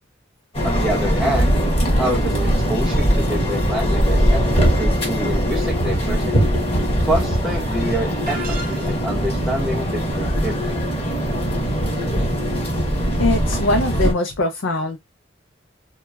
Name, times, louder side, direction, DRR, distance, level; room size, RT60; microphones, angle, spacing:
sound 1, 0.5-14.1, equal, 30° left, 1.0 m, -20 dB
voice 1, 0.6-1.5 2.0-6.5 7.0-8.4 8.7-10.8, equal, ahead, 0.4 m, -27 dB
sound 2, 8.3-9.3, right 2 dB, 45° right, 0.9 m, -34 dB
voice 2, 13.2-15.0, left 2 dB, 80° left, 0.5 m, -21 dB
3.0 x 2.2 x 2.2 m
head